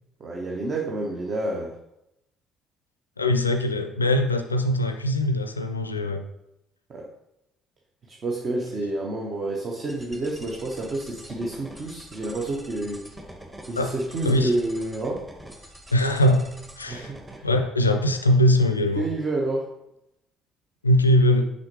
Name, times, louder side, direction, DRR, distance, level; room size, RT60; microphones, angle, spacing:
voice 1, 0.2-1.7 6.9-7.1 8.1-13.1 13.7-15.2 16.9-17.5 19.0-19.6, right 2 dB, 40° right, -1 dB, 0.9 m, -29 dB
voice 2, 3.2-6.2 13.8-13.9 14.2-14.5 15.9-16.5 16.8-17.1 17.4-19.1 20.8-21.5, left 1 dB, 85° left, 7 dB, 0.4 m, -21 dB
sound 1, 9.9-17.4, equal, 15° right, 1.2 m, -45 dB
6.1 x 5.4 x 3.0 m, 0.85 s
figure-of-eight pair, 50°, 0 cm